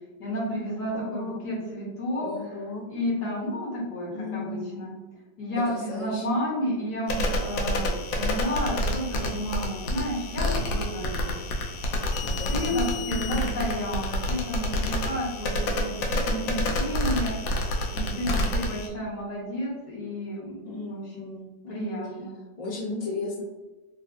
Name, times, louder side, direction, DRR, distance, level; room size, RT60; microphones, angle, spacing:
voice 1, 0.2-2.3 2.9-4.9 5.4-11.4 11.9-21.4 21.7-22.4, equal, 60° left, -6 dB, 1.4 m, -31 dB
voice 2, 0.9-1.4 2.2-2.8 4.1-4.9 5.7-6.4 12.2-13.9 20.6-22.0 22.6-23.4, left 3 dB, 30° left, -9 dB, 0.7 m, -36 dB
sound 1, 7.1-18.9, left 1 dB, 80° left, 1.2 m, -28 dB
3.5 x 2.5 x 2.3 m, 1.2 s
omnidirectional pair, 2.1 m